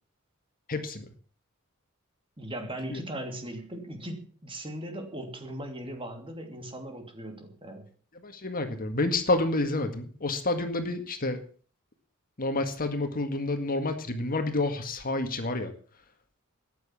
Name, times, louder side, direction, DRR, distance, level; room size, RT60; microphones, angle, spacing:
voice 1, 0.7-1.1 2.9-3.0 8.1-11.4 12.4-15.7, left 2 dB, 40° left, 6 dB, 1.9 m, -29 dB
voice 2, 2.4-7.9, right 1 dB, 25° right, 5 dB, 2.8 m, -38 dB
13.5 x 9.4 x 7.6 m, 0.44 s
head